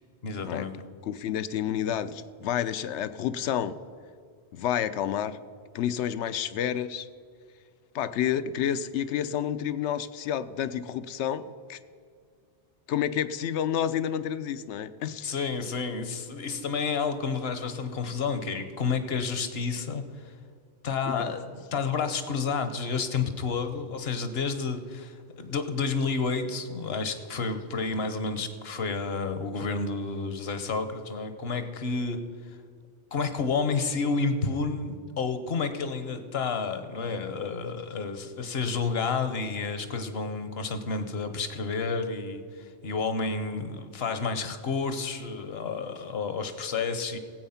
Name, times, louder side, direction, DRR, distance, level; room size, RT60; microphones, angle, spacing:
voice 1, 0.2-0.8 15.2-20.4 20.8-32.6 33.1-47.2, left 4 dB, 65° left, 10 dB, 1.1 m, -30 dB
voice 2, 1.0-3.8 4.5-5.4 5.7-7.1 7.9-11.8 12.9-15.3 21.2-21.3, left 9 dB, 80° left, 14 dB, 0.9 m, -29 dB
16.5 x 8.2 x 5.7 m, 2.2 s
omnidirectional pair, 1.1 m